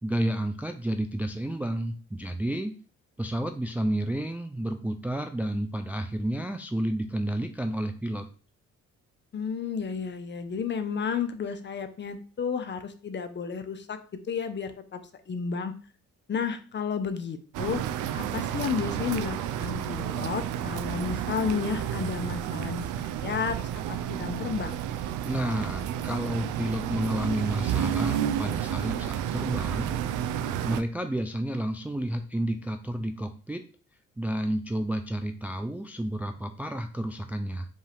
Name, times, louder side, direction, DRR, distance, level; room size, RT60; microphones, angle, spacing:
voice 1, 0.0-2.7 3.2-8.3 25.2-29.9 30.6-33.7 34.2-37.7, right 1 dB, 5° right, 6 dB, 0.3 m, -30 dB
voice 2, 9.3-14.0 14.2-15.0 15.3-15.7 16.3-17.8 18.1-23.6 23.9-24.8, left 6 dB, 35° left, 9 dB, 0.6 m, -32 dB
sound 1, 17.5-30.8, right 10 dB, 85° right, 0.5 m, -31 dB
5.3 x 2.4 x 3.4 m, 0.38 s
cardioid pair, 90°, 30 cm